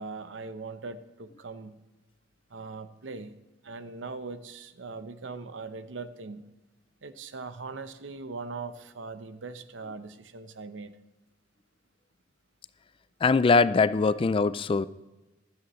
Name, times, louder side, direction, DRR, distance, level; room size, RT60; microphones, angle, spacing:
voice 1, 0.0-1.8 2.5-3.4 3.6-6.5 7.0-11.0, right 4 dB, 75° right, 11 dB, 0.8 m, -40 dB
voice 2, 13.2-14.9, left 4 dB, 30° left, 16 dB, 0.3 m, -22 dB
15.5 x 13.0 x 3.1 m, 1.1 s
head